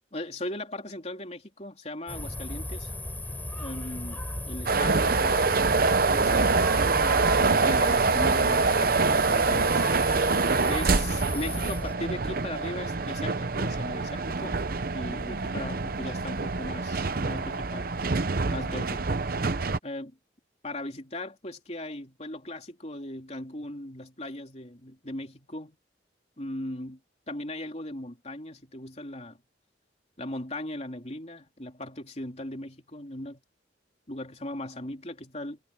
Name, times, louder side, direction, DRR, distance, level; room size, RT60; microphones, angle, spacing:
voice 1, 0.1-3.0 3.6-4.2 4.5-5.4 6.1-6.5 7.0-9.8 10.6-14.6 14.9-17.9 18.5-19.1 19.8-20.2 20.6-25.8 26.4-27.0 27.3-29.4 30.2-33.4 34.1-35.6, left 1 dB, 35° left, 3.4 m, -38 dB
sound 1, 2.1-11.9, left 1 dB, 10° left, 4.0 m, -35 dB
sound 2, 4.7-19.8, right 4 dB, 50° right, 0.8 m, -25 dB
head